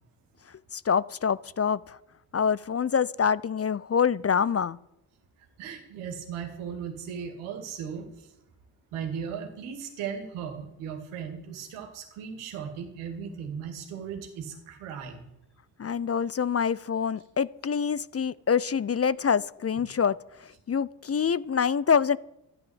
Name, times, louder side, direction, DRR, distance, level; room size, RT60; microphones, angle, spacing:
voice 1, 0.7-2.0 2.3-4.8 15.8-20.2 20.7-22.2, left 7 dB, 30° left, 20 dB, 0.6 m, -26 dB
voice 2, 5.6-8.3 8.9-15.2, right 7 dB, 90° right, 5 dB, 2.4 m, -37 dB
12.5 x 11.0 x 8.0 m, 0.85 s
supercardioid pair, 45°, 48 cm